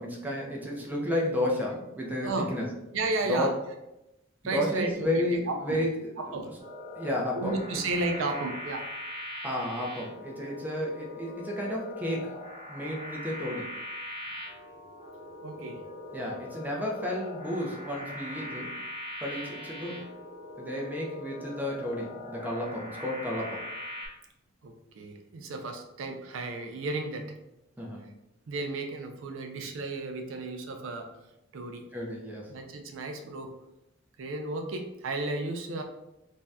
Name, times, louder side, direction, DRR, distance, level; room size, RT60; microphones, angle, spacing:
voice 1, 0.0-2.7 3.2-3.5 4.4-6.6 7.0-7.9 9.4-12.4 12.7-13.7 16.1-18.8 19.2-20.1 20.6-23.6 27.8-28.1 31.9-32.5, left 1 dB, 10° right, -2 dB, 0.5 m, -32 dB
voice 2, 2.9-3.5 4.4-5.8 6.2-6.5 7.3-8.8 15.4-15.8 24.6-27.3 28.5-31.1 31.5-31.8 32.5-33.5 34.2-35.8, right 2 dB, 70° right, 4 dB, 0.4 m, -33 dB
sound 1, 6.6-24.1, left 1 dB, 30° right, 1.1 m, -41 dB
2.6 x 2.2 x 3.3 m, 0.90 s
head